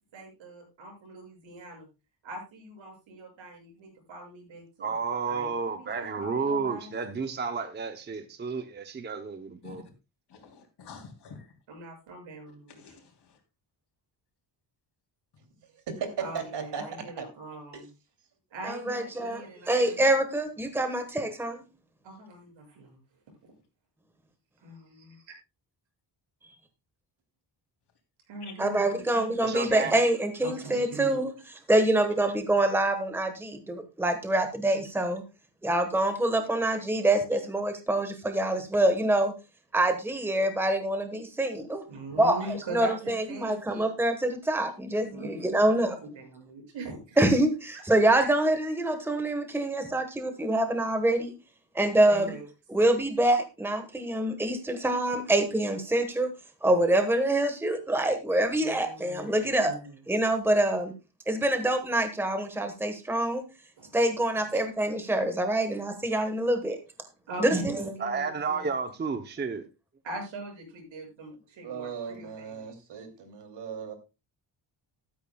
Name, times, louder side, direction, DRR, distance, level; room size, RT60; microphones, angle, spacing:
voice 1, 0.1-1.9 2.2-4.9 5.3-6.9 11.7-13.0 16.2-17.9 18.5-20.1 20.9-21.0 22.0-23.0 24.6-25.3 28.3-29.2 29.8-30.0 30.4-31.3 41.9-43.9 45.1-47.2 48.0-48.1 52.1-52.5 58.6-60.0 63.8-64.0 65.5-65.6 67.3-68.7 70.0-72.7, right 2 dB, 85° right, 1 dB, 7.0 m, -42 dB
voice 2, 4.8-9.8 29.4-29.9 68.0-69.6, right 5 dB, 25° right, 8 dB, 0.7 m, -31 dB
voice 3, 10.8-11.4 12.7-12.9, left 5 dB, 60° left, 3 dB, 3.3 m, -45 dB
voice 4, 15.9-17.3 17.7-17.8 71.6-73.9, right 6 dB, 65° right, 5 dB, 2.9 m, -37 dB
voice 5, 18.6-21.6 28.6-31.3 31.7-35.2 35.6-39.3 39.7-41.8 42.2-42.5 42.7-46.0 47.2-51.3 51.7-52.3 52.7-56.3 56.6-59.7 60.1-60.9 61.3-63.4 63.9-66.8 67.4-67.8, right 1 dB, 5° right, 7 dB, 1.3 m, -25 dB
14.0 x 13.0 x 2.3 m, 0.28 s
wide cardioid pair, 175°, 45 cm